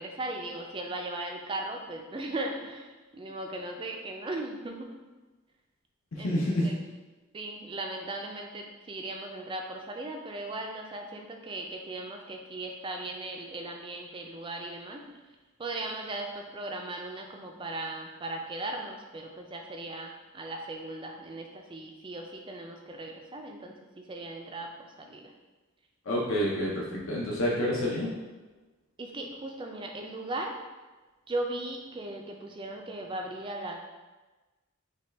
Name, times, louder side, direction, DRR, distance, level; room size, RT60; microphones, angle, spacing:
voice 1, 0.0-4.9 6.2-6.3 6.6-6.8 7.3-15.0 15.6-25.2 26.4-26.5 26.9-27.2 29.0-30.6 31.3-33.8, right 2 dB, 25° right, 2 dB, 0.4 m, -37 dB
voice 2, 6.1-6.7 26.1-28.1, left 1 dB, 65° left, -4 dB, 0.6 m, -28 dB
5.3 x 2.3 x 3.3 m, 1.2 s
head